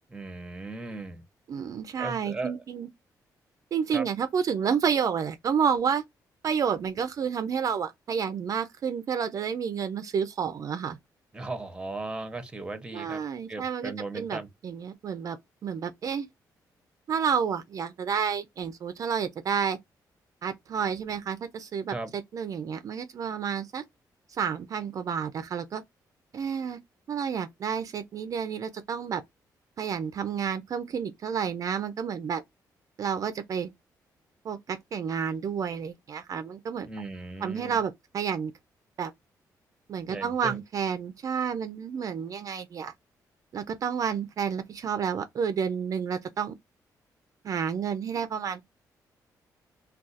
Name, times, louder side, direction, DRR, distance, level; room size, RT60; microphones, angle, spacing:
voice 1, 0.1-1.2 2.0-2.5 3.9-4.1 11.3-13.2 13.5-14.5 21.9-22.1 36.9-37.8 40.1-40.6, right 2 dB, 10° right, 0.7 m, -37 dB
voice 2, 1.5-2.9 3.7-6.0 6.4-11.0 12.9-15.4 15.6-16.3 17.1-19.8 20.4-23.8 24.3-25.8 26.3-26.8 27.1-29.2 29.8-32.4 33.0-33.7 34.4-36.9 37.4-38.5 39.0-39.1 39.9-42.9 43.5-46.5 47.4-48.6, right 7 dB, 50° right, 0.4 m, -30 dB
2.4 x 2.3 x 3.9 m
cardioid pair, 115°, 7 cm